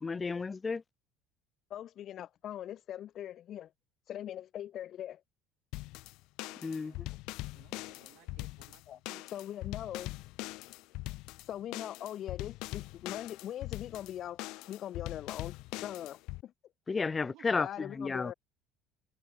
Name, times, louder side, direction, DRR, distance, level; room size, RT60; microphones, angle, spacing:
voice 1, 0.0-0.8 6.6-7.1 16.9-18.3, left 4 dB, 25° left, 0.5 m, -33 dB
voice 2, 1.7-3.7 4.1-5.2 8.9-9.0 9.3-10.1 11.5-14.4 14.7-16.5 17.6-18.3, left 11 dB, 55° left, 7.9 m, -41 dB
sound 1, 5.7-16.4, left 21 dB, 70° left, 1.5 m, -42 dB
voice 3, 6.5-7.0 7.5-9.2 17.2-17.4, right 18 dB, 70° right, 4.7 m, -61 dB
supercardioid pair, 90°, 0 cm